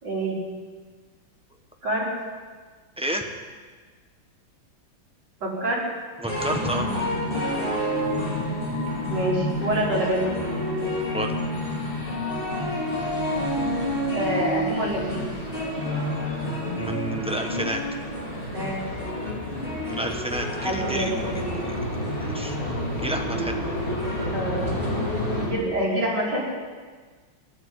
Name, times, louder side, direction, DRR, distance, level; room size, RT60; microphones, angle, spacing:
voice 1, 0.0-0.4 1.8-2.1 5.4-5.8 9.1-10.2 14.1-15.2 18.5-18.8 20.6-21.9 24.3-24.7 25.4-26.4, right 1 dB, 60° right, -5 dB, 4.7 m, -27 dB
voice 2, 3.0-3.3 6.2-6.9 11.1-11.4 16.7-17.8 19.8-21.1 22.2-22.6 23.0-23.7, right 1 dB, 5° right, 3 dB, 0.9 m, -30 dB
sound 1, 6.3-25.5, left 1 dB, 25° left, 3.0 m, -28 dB
14.5 x 11.0 x 8.3 m, 1.5 s
omnidirectional pair, 2.2 m